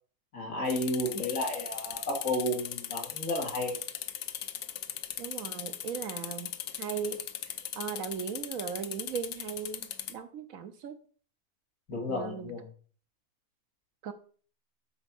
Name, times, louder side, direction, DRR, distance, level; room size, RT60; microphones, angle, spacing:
voice 1, 0.3-3.7 11.9-12.6, left 1 dB, 60° left, 1 dB, 2.5 m, -32 dB
sound 1, 0.7-10.1, left 10 dB, 75° left, 1.2 m, -39 dB
voice 2, 5.2-7.2 7.8-11.0 12.1-12.5 14.0-14.1, right 7 dB, 65° right, 10 dB, 1.1 m, -38 dB
8.1 x 4.3 x 6.0 m, 0.43 s
omnidirectional pair, 1.6 m